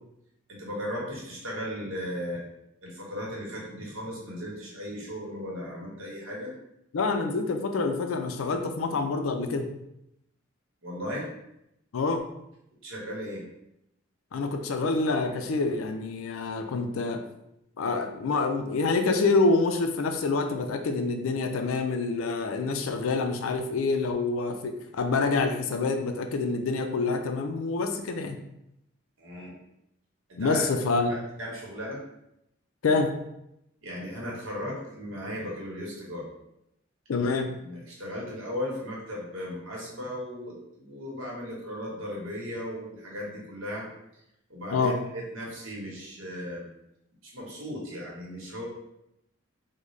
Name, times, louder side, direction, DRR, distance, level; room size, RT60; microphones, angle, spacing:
voice 1, 0.5-2.4 2.8-6.5 10.8-11.3 12.8-13.4 29.2-29.6 30.3-30.7 31.1-32.0 33.8-36.3 37.4-43.9 44.1-44.2 44.5-46.6 47.2-48.6, equal, 75° right, -3 dB, 1.1 m, -36 dB
voice 2, 6.9-9.7 11.9-12.2 14.3-17.2 17.8-28.4 30.4-31.1 32.8-33.1 37.1-37.5 44.7-45.0, left 3 dB, 90° left, 6 dB, 0.4 m, -27 dB
3.7 x 2.1 x 3.1 m, 0.83 s
head